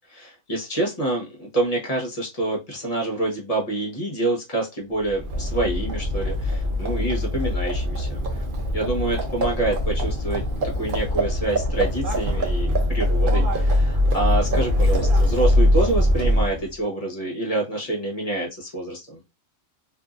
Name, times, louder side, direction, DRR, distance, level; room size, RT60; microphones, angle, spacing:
voice 1, 0.1-8.4 8.7-10.4 10.7-19.2, right 2 dB, 30° left, -1 dB, 1.0 m, -27 dB
Livestock farm animals working animals, 5.1-16.7, left 1 dB, 50° right, 0.7 m, -22 dB
2.7 x 2.5 x 2.4 m, 0.25 s
omnidirectional pair, 1.4 m